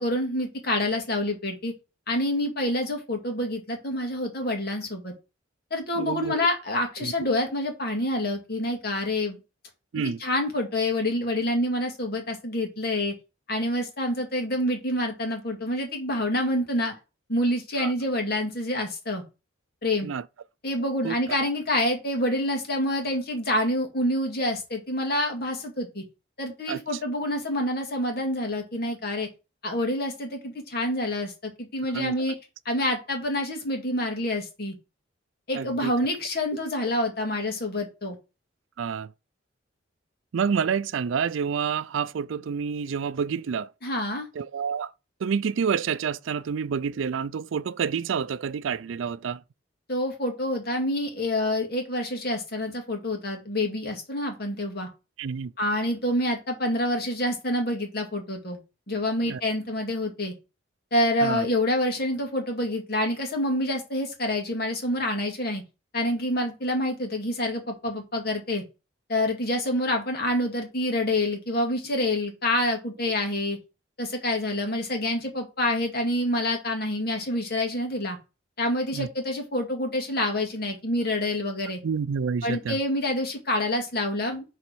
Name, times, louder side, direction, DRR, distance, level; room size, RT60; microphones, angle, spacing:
voice 1, 0.0-1.7 2.1-5.1 5.7-9.4 10.0-13.1 13.5-16.9 17.3-19.2 19.8-20.1 20.6-26.0 26.4-29.3 29.6-32.3 32.6-34.8 35.5-38.2 43.8-44.3 49.9-54.9 55.6-58.6 58.9-60.3 60.9-65.6 65.9-68.6 69.1-73.6 74.0-78.2 78.6-81.8 82.4-84.4, left 1 dB, 50° left, 2.3 m, -27 dB
voice 2, 6.0-6.5 7.0-7.1 9.9-10.2 17.8-17.9 20.0-20.2 21.0-21.2 26.7-26.8 31.9-32.1 35.5-35.9 38.8-39.1 40.3-43.7 44.4-44.9 45.2-49.4 55.2-55.5 59.2-59.4 61.2-61.5 78.9-79.1 81.8-82.8, right 6 dB, 80° right, 0.4 m, -28 dB
6.9 x 4.2 x 6.1 m
head